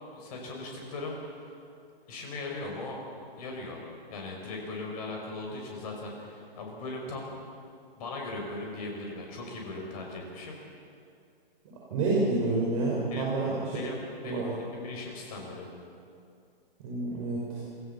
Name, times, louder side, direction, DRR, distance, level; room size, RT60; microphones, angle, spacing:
voice 1, 0.1-1.5 2.1-3.0 3.4-3.8 4.1-7.3 8.0-10.6 13.1-13.3 13.7-14.0 14.2-14.4 14.7-15.7, left 2 dB, 40° left, 0 dB, 5.8 m, -38 dB
voice 2, 11.9-13.8 14.2-14.5 16.8-17.6, right 2 dB, 35° right, -5 dB, 5.5 m, -28 dB
27.0 x 15.5 x 7.1 m, 2.5 s
figure-of-eight pair, 130°, 29 cm